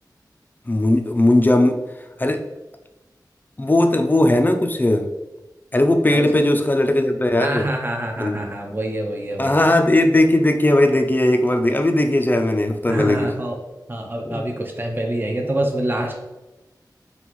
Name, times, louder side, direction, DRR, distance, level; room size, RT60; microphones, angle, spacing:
voice 1, 0.7-1.8 2.2-2.4 3.6-5.1 5.7-7.7 8.2-8.5 9.4-13.3 14.3-14.5, left 1 dB, 25° left, 5 dB, 0.5 m, -18 dB
voice 2, 7.4-9.7 12.9-13.6 13.9-16.1, right 1 dB, 30° right, 2 dB, 0.6 m, -26 dB
5.4 x 2.4 x 3.1 m, 1.0 s
wide cardioid pair, 60°, 7 cm